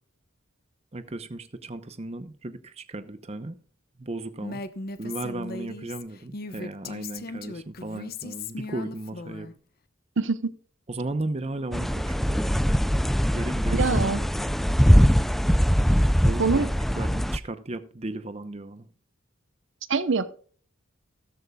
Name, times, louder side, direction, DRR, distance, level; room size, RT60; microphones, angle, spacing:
voice 1, 0.9-3.6 4.0-4.6 5.0-9.5 10.9-12.6 13.3-14.5 16.2-16.7 16.9-18.9, right 2 dB, 30° right, 0.8 m, -35 dB
Female speech woman speaking, 4.4-9.5, left 3 dB, 45° left, 1.0 m, -37 dB
voice 2, 10.2-10.5 13.7-14.2 16.4-16.7 19.9-20.3, right 4 dB, 65° right, 0.9 m, -24 dB
sound 1, 11.7-17.4, equal, ahead, 0.4 m, -21 dB
15.0 x 13.5 x 2.3 m
head